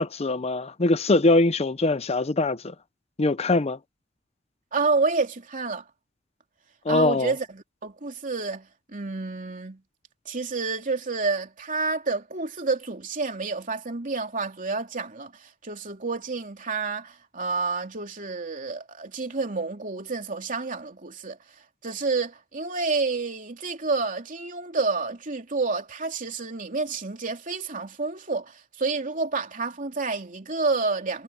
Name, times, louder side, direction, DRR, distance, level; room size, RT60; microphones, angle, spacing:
voice 1, 0.0-2.7 3.2-3.8 6.8-7.3, left 2 dB, 30° left, 0.6 m, -22 dB
voice 2, 4.7-5.9 6.9-9.8 10.2-31.2, right 4 dB, 40° right, 3.1 m, -29 dB
head